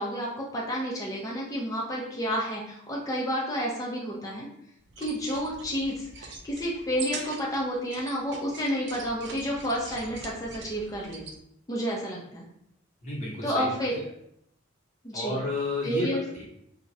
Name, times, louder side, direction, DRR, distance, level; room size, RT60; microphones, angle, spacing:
voice 1, 0.0-4.5 5.0-11.2 11.7-12.5 13.4-13.9 15.0-15.4 15.8-16.2, equal, 15° left, -3 dB, 0.4 m, -30 dB
sound 1, 4.9-11.4, right 4 dB, 55° right, 0.3 m, -43 dB
voice 2, 13.0-14.0 15.1-16.4, left 2 dB, 35° left, -6 dB, 0.8 m, -32 dB
2.4 x 2.0 x 2.6 m, 0.74 s
head